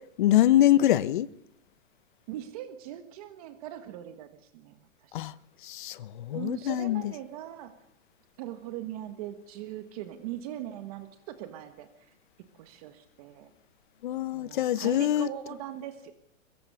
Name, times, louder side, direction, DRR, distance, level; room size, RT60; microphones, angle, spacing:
voice 1, 0.2-1.3 5.1-5.3 5.6-7.0 14.0-15.3, left 13 dB, 40° left, 0.9 m, -24 dB
voice 2, 2.3-5.4 6.3-7.7 8.4-12.1 12.5-13.5 14.3-16.1, right 12 dB, 30° right, 1.5 m, -41 dB
22.5 x 22.0 x 6.9 m
hypercardioid pair, 170°, 39 cm